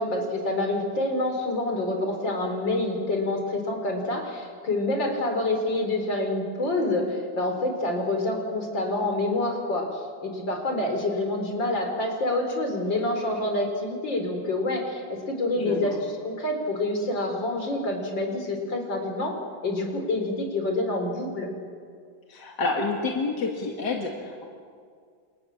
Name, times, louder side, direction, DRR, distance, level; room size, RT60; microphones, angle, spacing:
voice 1, 0.0-19.4 19.6-21.5, left 2 dB, 90° left, 3 dB, 5.1 m, -27 dB
voice 2, 15.6-16.0 22.3-24.4, left 3 dB, 65° left, 0 dB, 2.9 m, -29 dB
29.5 x 27.0 x 7.4 m, 2.1 s
omnidirectional pair, 2.0 m